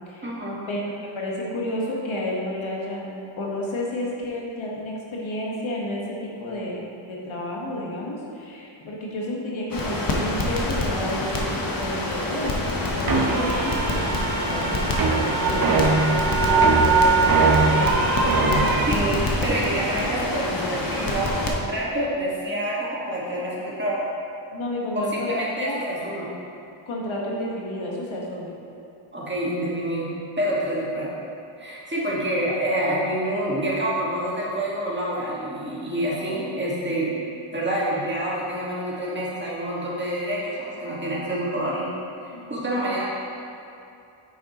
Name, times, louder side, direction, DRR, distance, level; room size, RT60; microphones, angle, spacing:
voice 1, 0.2-0.6 18.9-24.0 24.9-26.3 29.1-30.1 30.4-31.1 31.6-41.9 42.2-43.1, right 1 dB, 20° right, -6 dB, 1.7 m, -27 dB
voice 2, 1.1-6.8 7.1-15.7 16.4-18.7 24.5-25.8 26.8-28.5 42.3-42.9, left 1 dB, 70° left, -3 dB, 1.5 m, -31 dB
Crackle, 9.7-21.5, left 1 dB, 45° left, 1.1 m, -27 dB
sound 1, 13.1-18.8, right 4 dB, 45° right, 0.9 m, -21 dB
9.1 x 6.5 x 3.0 m, 2.7 s
wide cardioid pair, 110°, 49 cm